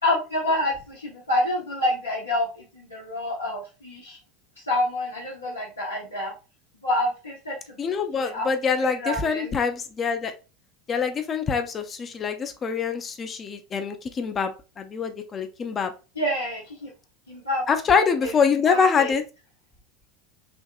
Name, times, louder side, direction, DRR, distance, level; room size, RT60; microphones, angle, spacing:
voice 1, 0.0-4.2 4.6-6.3 6.8-8.5 8.8-9.5 16.2-16.9 17.3-17.6 18.2-19.1, left 1 dB, 80° left, -5 dB, 0.8 m, -28 dB
voice 2, 7.8-10.3 10.9-14.5 14.8-15.9 17.7-19.2, left 6 dB, 30° left, 7 dB, 0.5 m, -24 dB
3.5 x 2.7 x 2.3 m, 0.31 s
figure-of-eight pair, 75°, 0 cm